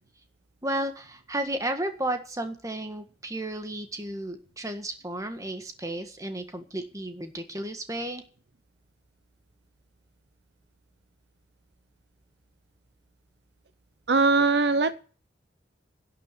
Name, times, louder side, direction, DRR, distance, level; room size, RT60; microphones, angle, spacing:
voice 1, 0.6-8.2, right 1 dB, 20° right, 1.6 m, -33 dB
voice 2, 14.1-14.9, right 3 dB, 65° right, 0.7 m, -21 dB
11.5 x 9.5 x 8.4 m
head